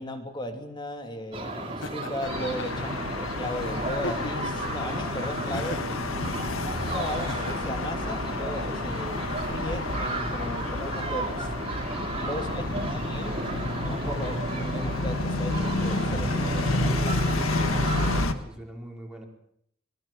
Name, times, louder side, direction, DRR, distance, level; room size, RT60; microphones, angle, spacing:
voice 1, 0.0-5.8 6.9-11.5 12.2-13.4 13.8-17.2, left 1 dB, 20° left, 5 dB, 3.2 m, -36 dB
sound 1, 1.3-18.3, right 2 dB, 25° right, 3.4 m, -34 dB
Laughter, 1.8-2.9 3.9-4.6 5.5-6.0 7.1-7.9, left 2 dB, 60° left, 1.2 m, -37 dB
sound 2, 2.2-18.3, left 2 dB, 80° left, 1.7 m, -30 dB
voice 2, 17.8-19.3, equal, 5° right, -1 dB, 4.5 m, -44 dB
23.0 x 21.5 x 7.5 m, 0.71 s
head